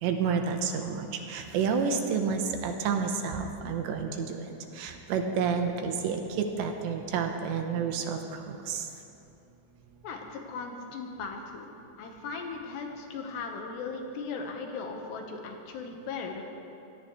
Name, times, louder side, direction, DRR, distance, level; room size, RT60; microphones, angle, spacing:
voice 1, 0.0-4.4 4.7-8.9, right 6 dB, 80° right, 4 dB, 3.1 m, -30 dB
voice 2, 10.0-11.7 12.0-16.4, left 4 dB, 70° left, 2 dB, 3.2 m, -38 dB
24.0 x 18.0 x 3.3 m, 2.9 s
omnidirectional pair, 5.3 m